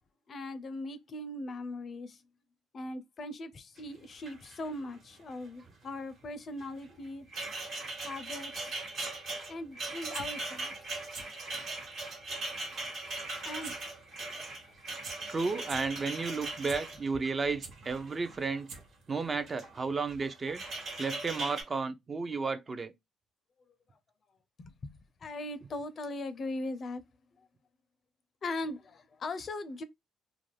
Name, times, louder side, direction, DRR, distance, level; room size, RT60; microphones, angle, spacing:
voice 1, 0.3-2.2 2.7-7.3 8.0-8.8 9.5-10.7 13.5-13.8 24.6-27.0 28.4-29.8, left 2 dB, 50° left, 0.5 m, -39 dB
sound 1, 3.8-3.9 4.1-5.0 5.2-5.5 6.6-18.8 19.4-19.8 20.1-21.6, right 2 dB, 65° right, 1.2 m, -40 dB
sound 2, 9.9-10.3 11.0-11.2 11.7-11.8 13.6-13.7 14.1-14.2 14.7-14.8 15.0-15.1 15.6-15.8 16.3-16.8 17.3-17.7 18.4-18.5 18.7-19.0 19.4-19.5, right 4 dB, 90° right, 0.7 m, -44 dB
voice 2, 15.3-18.7 19.1-20.6 21.0-22.9, right 4 dB, 35° right, 0.4 m, -33 dB
2.4 x 2.1 x 3.1 m
supercardioid pair, 70°, 0 cm